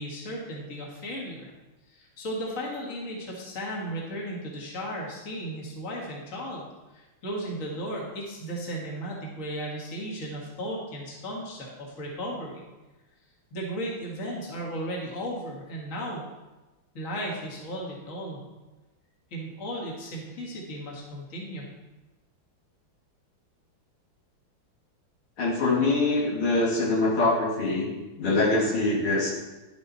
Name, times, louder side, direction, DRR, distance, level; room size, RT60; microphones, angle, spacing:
voice 1, 0.0-1.5 1.9-6.7 6.9-12.6 13.5-16.3 16.9-18.4 19.3-21.7, equal, 40° left, -3 dB, 2.2 m, -35 dB
voice 2, 25.4-27.9 28.2-29.3, left 2 dB, 75° left, -4 dB, 3.0 m, -24 dB
11.0 x 7.8 x 4.2 m, 1.1 s
omnidirectional pair, 2.4 m